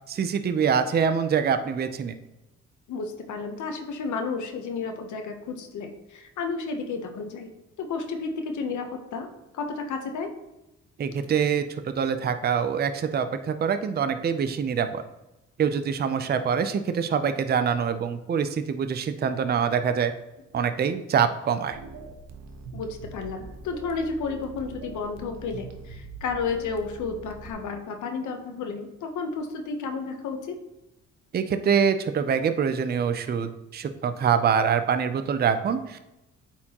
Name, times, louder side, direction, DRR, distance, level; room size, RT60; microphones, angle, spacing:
voice 1, 0.1-2.1 11.0-15.0 15.6-20.1 20.5-21.8 31.3-36.1, right 7 dB, 35° right, 9 dB, 0.5 m, -25 dB
voice 2, 2.9-7.5 7.8-9.3 9.5-10.3 22.7-30.6, left 4 dB, 75° left, 5 dB, 0.9 m, -32 dB
sound 1, 21.7-27.5, right 3 dB, 65° right, 0.9 m, -43 dB
8.5 x 4.4 x 2.9 m, 0.93 s
cardioid pair, 90°, 30 cm